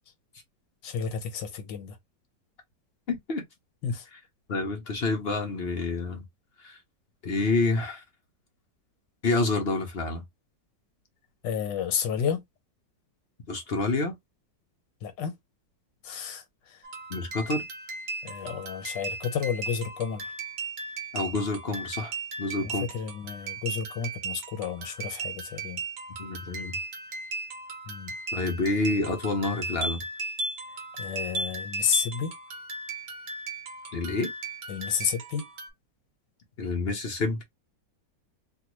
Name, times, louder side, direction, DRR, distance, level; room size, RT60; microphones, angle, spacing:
voice 1, 0.8-2.0 3.8-4.1 11.4-12.4 15.0-15.4 16.0-16.9 18.2-20.3 22.6-25.8 27.9-28.2 31.0-32.3 34.7-35.4, left 7 dB, 80° left, 1.6 m, -31 dB
voice 2, 3.1-3.4 4.5-6.2 6.6-6.8 7.2-8.0 9.2-10.2 13.5-14.1 17.1-17.7 21.1-22.1 22.4-22.9 26.2-26.8 28.3-30.0 33.9-34.3 36.6-37.4, left 3 dB, 50° left, 0.7 m, -28 dB
sound 1, 16.8-35.7, right 3 dB, 60° right, 1.2 m, -36 dB
3.3 x 2.4 x 3.0 m
omnidirectional pair, 2.0 m